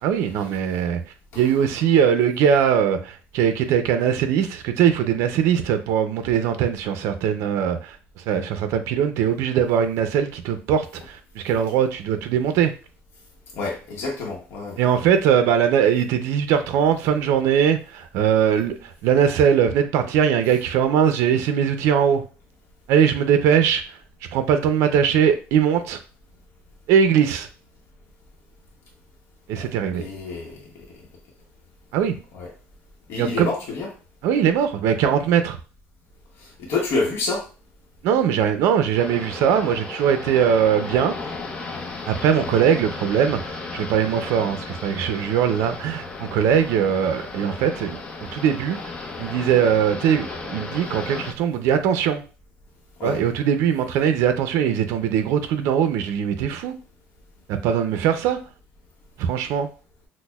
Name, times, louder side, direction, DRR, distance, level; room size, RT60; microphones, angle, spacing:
voice 1, 0.0-1.0 1.4-12.7 14.8-22.2 22.9-24.0 24.3-26.0 26.9-27.5 29.5-30.0 31.9-32.2 33.2-33.5 34.2-35.6 38.0-41.1 42.1-48.0 48.3-48.8 49.2-52.2 53.0-56.7 57.5-58.4 59.2-59.7, right 8 dB, 75° right, 0.4 m, -21 dB
voice 2, 13.5-14.8 29.6-29.7 29.9-31.0 32.3-32.5 33.1-33.9 36.4-37.4 53.0-53.2, left 3 dB, 60° left, 0.8 m, -28 dB
sound 1, 38.9-51.3, left 3 dB, 20° left, 0.6 m, -35 dB
6.1 x 2.0 x 2.2 m
cardioid pair, 150°, 5 cm